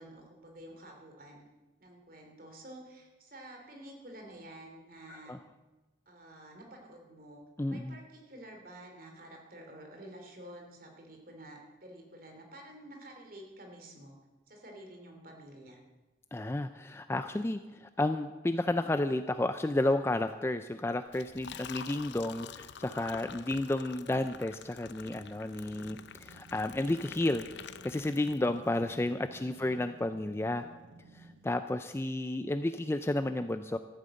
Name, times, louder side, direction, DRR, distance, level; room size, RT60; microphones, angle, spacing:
voice 1, 0.0-1.4 1.8-5.3 6.1-7.4 7.7-14.2 14.5-15.8 29.5-29.8, right 1 dB, 50° right, 2 dB, 2.8 m, -50 dB
voice 2, 7.6-8.0 16.3-30.7 31.1-33.8, left 1 dB, 15° left, 10 dB, 0.3 m, -32 dB
Liquid, 21.1-28.8, left 7 dB, 70° left, 0.5 m, -48 dB
sound 1, 25.1-31.9, right 2 dB, 80° right, 1.1 m, -56 dB
13.5 x 8.8 x 7.7 m, 1.2 s
head